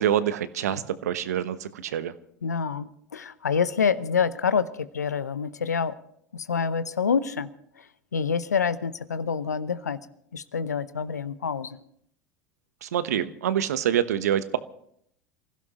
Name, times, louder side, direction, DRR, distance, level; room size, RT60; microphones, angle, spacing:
voice 1, 0.0-2.1 12.8-14.6, right 10 dB, 70° right, 14 dB, 1.0 m, -26 dB
voice 2, 2.4-6.0 6.3-7.5 8.1-10.0 10.3-11.8, left 6 dB, 85° left, 15 dB, 0.8 m, -27 dB
28.5 x 16.0 x 3.0 m, 0.69 s
figure-of-eight pair, 75°, 9 cm